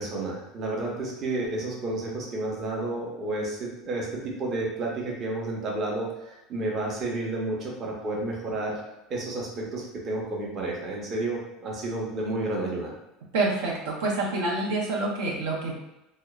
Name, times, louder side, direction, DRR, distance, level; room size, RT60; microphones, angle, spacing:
voice 1, 0.0-8.8 9.1-12.9, right 2 dB, 40° right, -2 dB, 0.7 m, -31 dB
voice 2, 13.3-15.8, right 2 dB, 90° right, -3 dB, 0.6 m, -27 dB
2.8 x 2.0 x 2.3 m, 0.92 s
supercardioid pair, 120°, 0 cm